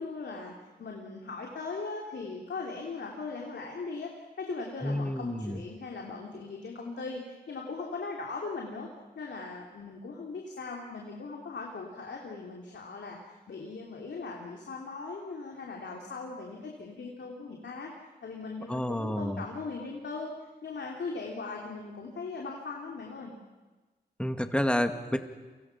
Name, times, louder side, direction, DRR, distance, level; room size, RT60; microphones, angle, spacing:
voice 1, 0.0-8.9 9.1-13.2 13.5-17.9 18.2-20.3 20.6-23.3, left 4 dB, 80° left, 0 dB, 3.1 m, -39 dB
voice 2, 4.8-5.6 18.7-19.4 24.2-25.2, left 1 dB, 5° left, 6 dB, 2.3 m, -29 dB
30.0 x 25.5 x 6.0 m, 1.2 s
cardioid pair, 70°, 18 cm